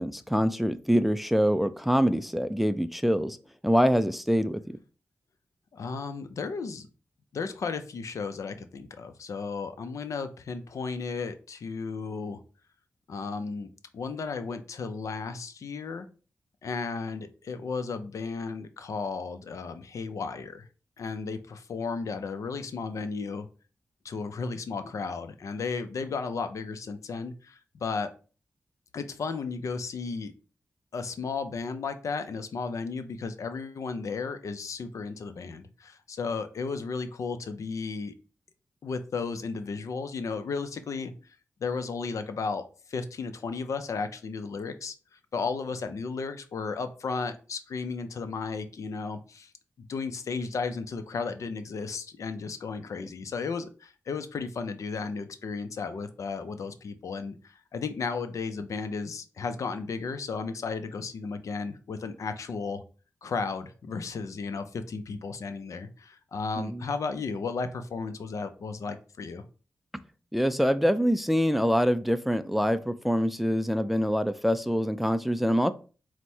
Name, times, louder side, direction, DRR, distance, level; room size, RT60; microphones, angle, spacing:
voice 1, 0.0-3.4 3.6-4.6 66.6-66.8 70.3-75.7, equal, 5° right, 0.3 m, -25 dB
voice 2, 5.7-6.9 7.3-12.4 13.1-16.1 16.6-20.7 21.0-23.5 24.0-28.1 28.9-30.3 30.9-38.1 38.8-42.6 42.9-44.9 45.3-49.5 49.8-62.8 63.2-69.4, left 4 dB, 75° left, 0.5 m, -34 dB
4.5 x 2.1 x 4.3 m
cardioid pair, 70°, 5 cm